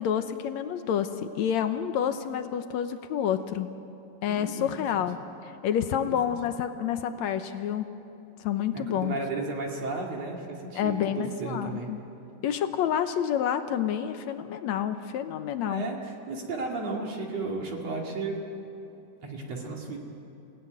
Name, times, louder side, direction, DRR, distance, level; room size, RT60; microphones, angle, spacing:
voice 1, 0.0-3.7 4.2-5.2 5.4-7.9 8.4-9.2 10.7-12.0 12.4-15.8, left 9 dB, 70° left, 9 dB, 1.8 m, -28 dB
voice 2, 4.3-5.0 6.1-6.2 8.7-11.9 15.6-18.4 19.2-20.0, right 3 dB, 50° right, 0 dB, 3.2 m, -34 dB
28.5 x 18.0 x 9.3 m, 2.8 s
omnidirectional pair, 4.0 m